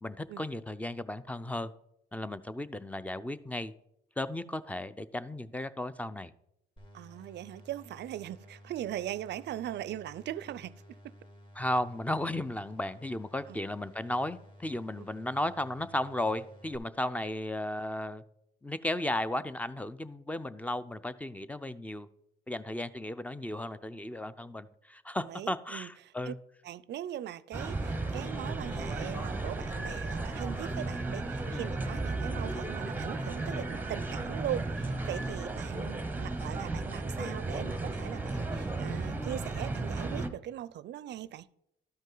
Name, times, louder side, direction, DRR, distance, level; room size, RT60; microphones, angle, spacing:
voice 1, 0.0-1.7 2.1-3.7 4.2-6.3 11.6-18.2 18.6-22.1 22.5-26.4 31.5-31.7, left 1 dB, 5° left, 0.4 m, -35 dB
sound 1, 6.8-16.8, equal, 25° left, 1.9 m, -54 dB
voice 2, 6.9-11.0 13.5-13.6 15.0-15.1 25.2-26.3 26.6-41.5, right 12 dB, 60° right, 0.4 m, -40 dB
sound 2, 27.5-40.3, right 2 dB, 10° right, 0.9 m, -34 dB
12.5 x 5.3 x 3.9 m
cardioid pair, 90°, 20 cm